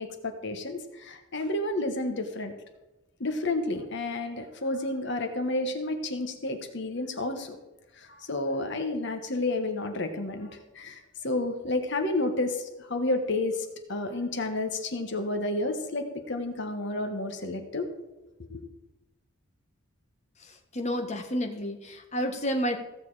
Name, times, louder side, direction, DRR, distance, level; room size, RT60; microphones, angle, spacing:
voice 1, 0.0-2.5 3.2-7.6 8.0-17.9 18.5-18.6, left 2 dB, 55° left, 6 dB, 1.3 m, -31 dB
voice 2, 20.7-22.8, equal, 30° left, 4 dB, 1.3 m, -30 dB
15.5 x 6.8 x 4.8 m, 1.0 s
head